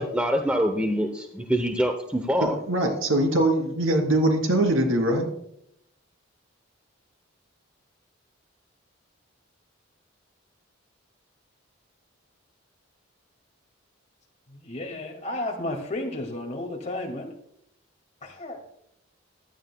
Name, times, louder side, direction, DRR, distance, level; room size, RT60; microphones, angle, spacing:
voice 1, 0.0-2.6, equal, 5° right, 5 dB, 0.6 m, -25 dB
voice 2, 2.4-5.3, right 1 dB, 80° right, 3 dB, 2.9 m, -22 dB
voice 3, 14.5-17.3 18.2-18.6, left 1 dB, 35° left, 3 dB, 2.1 m, -33 dB
15.5 x 11.5 x 2.2 m, 0.74 s
head